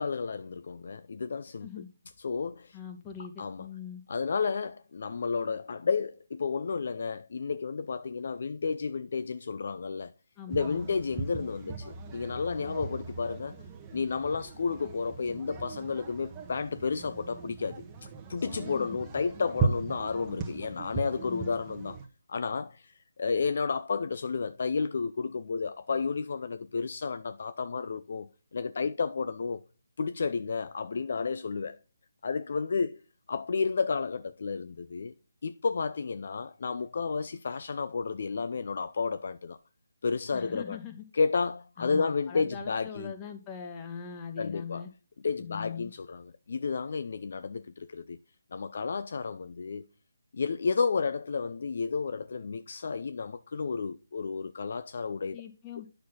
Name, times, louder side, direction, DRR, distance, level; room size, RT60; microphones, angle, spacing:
voice 1, 0.0-1.7 2.2-2.8 3.4-3.7 4.1-10.1 10.5-13.6 13.9-22.0 22.3-29.6 30.0-31.8 32.2-33.0 33.3-35.1 35.4-39.6 40.0-40.8 41.1-43.1 44.4-44.8 45.2-48.2 48.5-49.9 50.3-55.4, left 5 dB, 55° left, 0.5 m, -32 dB
voice 2, 2.7-4.0 10.4-10.9 18.6-19.0 21.2-21.5 40.3-41.0 41.8-44.9 45.4-45.9 55.3-55.9, left 7 dB, 20° left, 1.7 m, -41 dB
sound 1, 10.5-22.1, right 4 dB, 15° right, 1.3 m, -38 dB
9.4 x 6.5 x 4.0 m
figure-of-eight pair, 150°, 0 cm